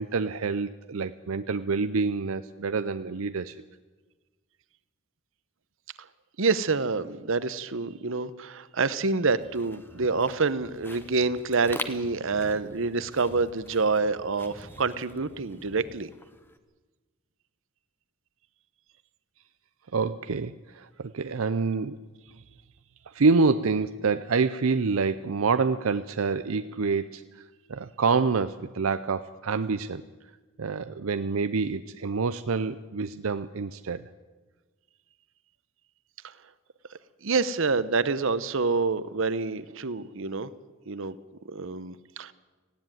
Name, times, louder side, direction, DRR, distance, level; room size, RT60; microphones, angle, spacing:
voice 1, 0.0-3.6 19.9-22.0 23.1-27.4 27.7-30.0 30.6-34.0, right 4 dB, 85° right, 11 dB, 0.6 m, -27 dB
voice 2, 6.4-16.1 37.2-40.5 40.9-41.2 41.5-42.3, right 4 dB, 65° right, 15 dB, 0.9 m, -27 dB
sound 1, 9.3-16.6, left 1 dB, 10° left, 1.1 m, -44 dB
18.5 x 16.0 x 9.1 m, 1.3 s
head